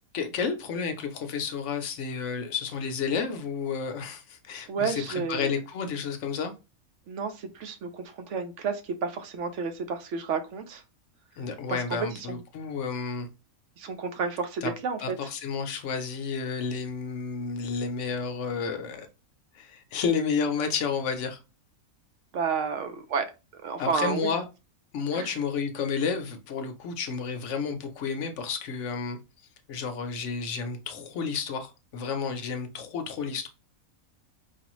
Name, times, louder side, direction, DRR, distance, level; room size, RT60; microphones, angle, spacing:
voice 1, 0.1-6.5 11.4-13.3 14.6-14.7 15.0-19.1 19.5-21.4 23.8-24.4 24.9-29.2 29.7-33.5, left 5 dB, 65° left, 0.9 m, -31 dB
voice 2, 4.7-5.5 7.1-10.8 11.7-12.4 13.8-15.2 22.3-23.2 23.5-24.3 25.1-25.3, right 5 dB, 65° right, 0.8 m, -31 dB
4.8 x 2.4 x 3.0 m
omnidirectional pair, 1.5 m